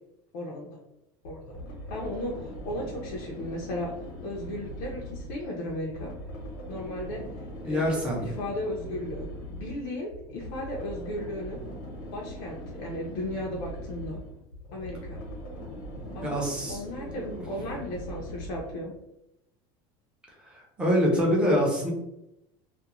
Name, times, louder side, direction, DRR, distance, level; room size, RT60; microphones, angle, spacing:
voice 1, 0.3-0.8 1.2-1.6 1.9-3.9 4.2-6.1 6.7-7.2 7.6-11.6 12.1-14.2 14.7-15.2 16.1-16.4 16.7-18.9, left 1 dB, 55° left, -2 dB, 0.5 m, -35 dB
sound 1, 1.2-18.9, equal, 85° left, 0.9 m, -41 dB
voice 2, 7.6-8.2 16.2-16.8 17.1-17.4 20.8-21.9, equal, 10° right, -3 dB, 0.5 m, -25 dB
2.4 x 2.1 x 2.9 m, 0.86 s
cardioid pair, 180°, 12 cm